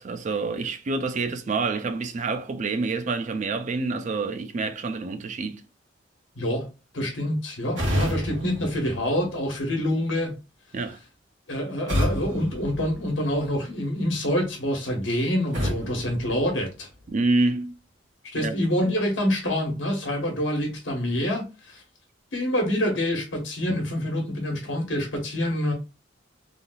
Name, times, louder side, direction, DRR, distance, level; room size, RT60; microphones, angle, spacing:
voice 1, 0.0-5.6 10.7-11.0 17.1-17.7 18.4-18.6, right 3 dB, 40° right, 0.4 m, -27 dB
voice 2, 6.4-6.7 6.9-10.3 11.5-16.9 18.3-21.8 22.3-25.7, left 1 dB, 85° left, 1.1 m, -26 dB
sound 1, 7.7-9.7 11.9-13.6 15.5-17.1, equal, 80° right, 1.5 m, -30 dB
3.4 x 2.6 x 2.2 m
head